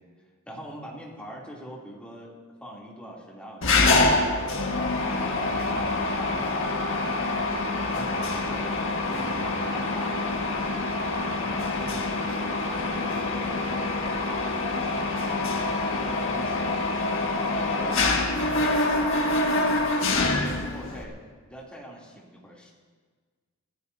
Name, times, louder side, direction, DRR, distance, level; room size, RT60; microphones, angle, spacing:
voice 1, 0.5-2.3 2.6-7.2 7.8-16.7 17.2-19.9 20.3-21.1 21.5-22.7, equal, 5° left, -5 dB, 3.0 m, -43 dB
Mechanisms, 3.6-21.0, left 2 dB, 60° left, 1.8 m, -26 dB
26.5 x 16.0 x 2.8 m, 1.5 s
head